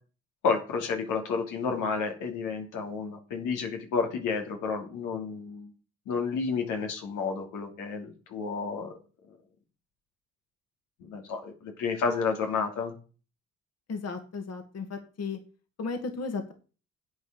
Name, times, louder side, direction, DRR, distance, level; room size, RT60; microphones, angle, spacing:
voice 1, 0.4-5.7 6.1-8.9 11.0-12.9, left 5 dB, 90° left, 3 dB, 2.9 m, -31 dB
voice 2, 13.9-15.4 15.8-16.5, left 4 dB, 55° left, 5 dB, 2.4 m, -35 dB
11.0 x 8.5 x 5.2 m, 0.35 s
cardioid pair, 90°, 30 cm